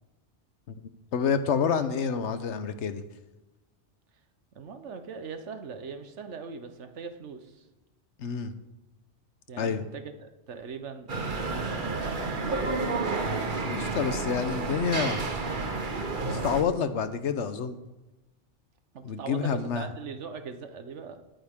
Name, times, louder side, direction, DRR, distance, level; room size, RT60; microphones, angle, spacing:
voice 1, 0.7-3.0 8.2-8.5 9.6-9.8 13.7-15.1 16.2-17.8 19.0-19.9, left 6 dB, 80° left, 11 dB, 1.1 m, -28 dB
voice 2, 4.5-7.7 9.5-12.9 18.9-21.2, right 5 dB, 80° right, 8 dB, 1.3 m, -41 dB
sound 1, 11.1-16.6, right 3 dB, 45° right, 1.2 m, -30 dB
19.0 x 8.9 x 3.7 m, 1.0 s
omnidirectional pair, 1.2 m